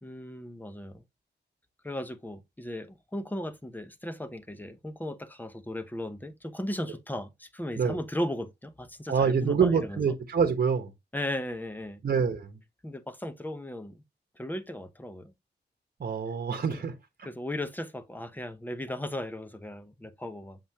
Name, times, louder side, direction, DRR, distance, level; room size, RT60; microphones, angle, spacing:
voice 1, 0.0-1.0 1.8-10.1 11.1-12.0 12.8-14.0 14.4-15.3 16.7-16.8 17.2-20.6, left 1 dB, 10° left, 0.8 m, -36 dB
voice 2, 9.1-10.9 12.0-12.6 16.0-16.9, right 6 dB, 55° right, 1.2 m, -26 dB
7.4 x 5.3 x 2.9 m
wide cardioid pair, 165°, 18 cm